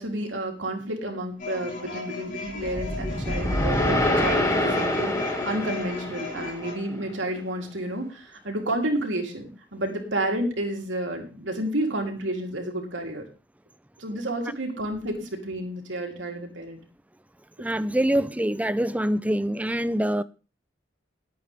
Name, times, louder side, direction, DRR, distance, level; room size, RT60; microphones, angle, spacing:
voice 1, 0.0-13.3 14.0-16.8, right 1 dB, 85° right, 3.4 m, -30 dB
sound 1, 1.4-6.7, left 4 dB, 45° left, 6.7 m, -36 dB
sound 2, 2.6-6.9, left 1 dB, 20° left, 2.2 m, -26 dB
voice 2, 17.6-20.2, right 1 dB, 10° right, 0.6 m, -25 dB
21.0 x 8.7 x 3.5 m
head